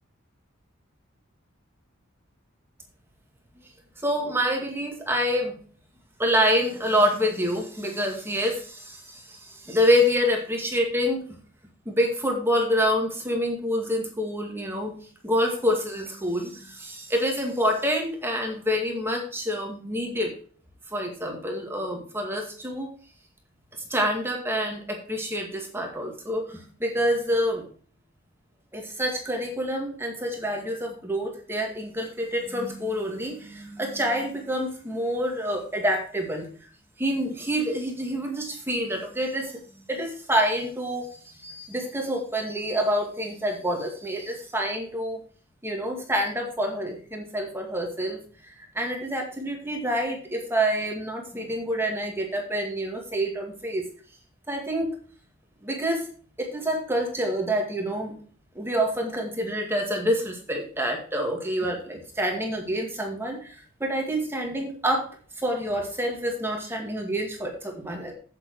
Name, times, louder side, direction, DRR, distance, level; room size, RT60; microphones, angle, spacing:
voice 1, 4.0-5.5 6.2-11.2 11.9-14.9 15.2-20.3 20.9-22.9 23.9-27.7 28.7-36.5 37.0-39.6 39.9-45.2 45.6-53.8 54.5-54.9 55.6-56.0 56.4-58.1 58.6-65.1 65.4-68.1, equal, 10° right, 1 dB, 2.1 m, -27 dB
8.6 x 7.6 x 4.7 m, 0.43 s
head